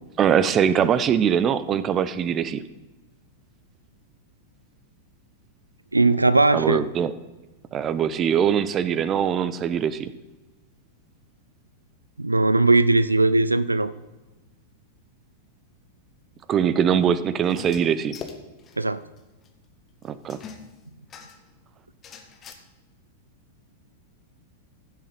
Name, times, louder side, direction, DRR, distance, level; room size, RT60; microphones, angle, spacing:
voice 1, 0.2-2.6 6.5-7.1 7.7-10.1 16.5-18.2 20.0-20.4, right 8 dB, 30° right, 15 dB, 0.6 m, -22 dB
voice 2, 5.9-6.8 12.2-13.9 18.8-19.0, right 2 dB, 85° right, 16 dB, 0.3 m, -19 dB
sound 1, 17.4-18.9 19.2-19.3 19.4-19.5 20.3-21.5 22.0-22.5, left 6 dB, 25° left, 1.2 m, -42 dB
15.5 x 7.0 x 3.9 m, 1.2 s
figure-of-eight pair, 95°, 0 cm